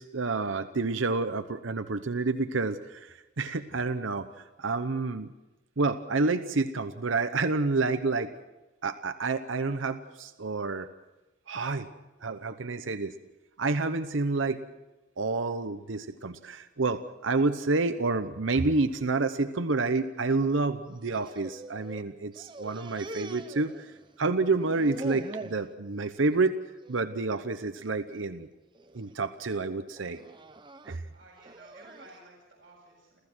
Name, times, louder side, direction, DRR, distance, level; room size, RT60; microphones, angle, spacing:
voice 1, 0.0-4.3 4.6-5.3 5.8-8.3 8.8-10.9 11.5-11.9 12.2-13.1 13.6-14.6 15.2-26.6 26.9-28.5 28.9-30.2 30.9-31.0, right 3 dB, 90° right, 9 dB, 0.9 m, -29 dB
sound 1, 21.0-22.0 22.3-24.2 24.5-25.6 26.1-26.5 26.8-27.0 27.8-28.2 28.7-29.1 30.0-32.2, right 2 dB, 25° right, 0.9 m, -44 dB
voice 2, 31.1-33.2, right 2 dB, 50° right, -6 dB, 7.1 m, -54 dB
29.5 x 14.5 x 6.2 m, 1.0 s
head